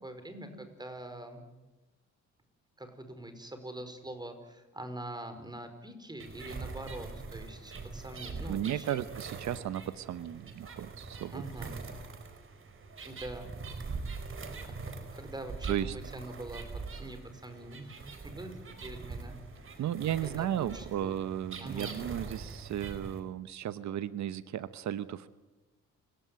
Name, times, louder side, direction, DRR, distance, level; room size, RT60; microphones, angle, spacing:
voice 1, 0.0-1.4 2.8-9.0 11.3-11.8 13.0-13.5 14.6-18.0 18.2-19.4 19.6-19.9 20.2-21.2 21.6-22.0, right 1 dB, 15° right, 8 dB, 5.0 m, -44 dB
sound 1, 6.2-23.2, right 4 dB, 45° right, 4.5 m, -43 dB
voice 2, 8.5-11.4 15.7-16.0 19.8-25.3, right 11 dB, 70° right, 14 dB, 1.0 m, -35 dB
29.5 x 17.5 x 9.4 m, 1.1 s
cardioid pair, 90°, 30 cm